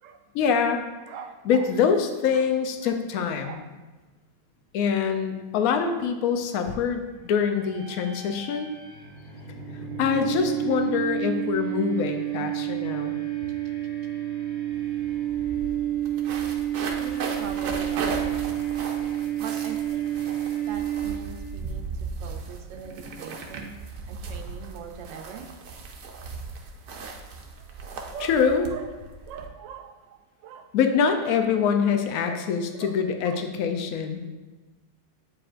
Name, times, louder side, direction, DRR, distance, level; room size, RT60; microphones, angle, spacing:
voice 1, 0.3-0.8 1.4-3.6 4.7-8.7 9.5-9.6 10.0-13.2 28.2-28.6 30.7-34.2, left 6 dB, 75° left, 6 dB, 0.8 m, -24 dB
voice 2, 1.1-1.7 2.3-2.4 2.8-3.0 3.4-3.7 17.0-18.4 19.4-20.1 20.7-21.9 22.2-23.7 24.1-25.5 28.1-28.9 29.3-30.7 32.2-32.4 32.7-33.4, right 7 dB, 80° right, 6 dB, 1.3 m, -41 dB
sound 1, 7.5-21.6, right 12 dB, 5° right, 0.3 m, -30 dB
sound 2, 14.7-14.8 15.0-29.5, right 3 dB, 65° right, 1.1 m, -37 dB
8.4 x 4.9 x 2.5 m, 1.2 s
omnidirectional pair, 2.0 m